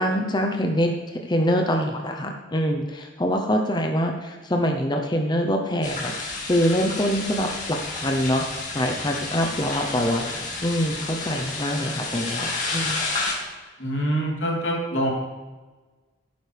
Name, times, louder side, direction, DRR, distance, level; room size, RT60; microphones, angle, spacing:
voice 1, 0.0-6.1 6.5-8.4 8.7-13.0, equal, 25° left, 3 dB, 0.8 m, -24 dB
sound 1, 5.8-13.3, left 3 dB, 45° left, 2.3 m, -31 dB
voice 2, 13.8-15.1, right 1 dB, 85° left, -2 dB, 3.1 m, -25 dB
15.5 x 9.4 x 3.4 m, 1.3 s
head